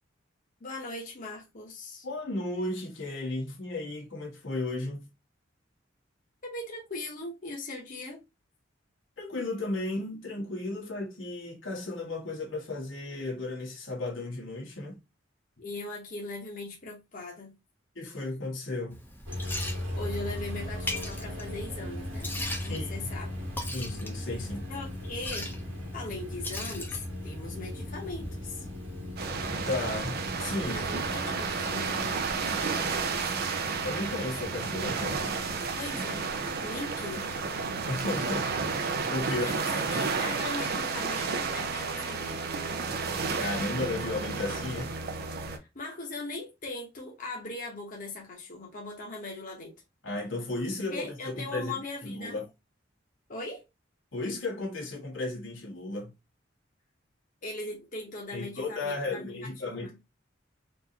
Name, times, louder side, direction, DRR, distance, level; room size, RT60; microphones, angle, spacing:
voice 1, 0.6-2.1 6.4-8.2 15.6-17.6 19.9-22.3 22.6-23.3 24.7-25.5 25.9-27.0 27.2-28.6 30.6-33.4 35.7-36.3 36.6-37.3 39.3-42.6 45.6-49.7 50.9-52.4 53.3-53.6 57.4-60.0, left 2 dB, 45° left, 1.0 m, -40 dB
voice 2, 2.0-5.1 9.2-15.0 17.9-19.0 22.6-22.9 23.7-24.7 29.7-30.8 33.8-35.3 37.9-39.4 43.4-45.0 50.0-52.4 54.1-56.1 58.3-60.0, left 2 dB, 85° left, 1.5 m, -34 dB
Liquid, 18.9-31.2, left 1 dB, 10° left, 0.7 m, -41 dB
sound 1, 19.3-39.2, left 1 dB, 85° right, 2.0 m, -39 dB
sound 2, 29.2-45.6, right 4 dB, 55° right, 0.6 m, -32 dB
4.5 x 2.7 x 2.8 m
head